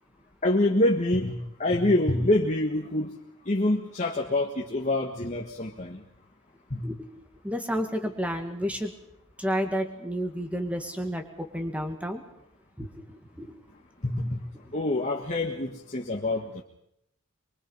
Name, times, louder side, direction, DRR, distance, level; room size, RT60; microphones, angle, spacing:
voice 1, 0.4-3.2 3.4-6.0 6.7-6.9 14.0-14.4 14.7-16.6, left 1 dB, 35° left, -1 dB, 1.8 m, -26 dB
voice 2, 7.4-8.9 9.4-12.3 12.8-13.5, equal, 5° right, 6 dB, 2.1 m, -31 dB
24.0 x 23.5 x 5.7 m, 0.77 s
head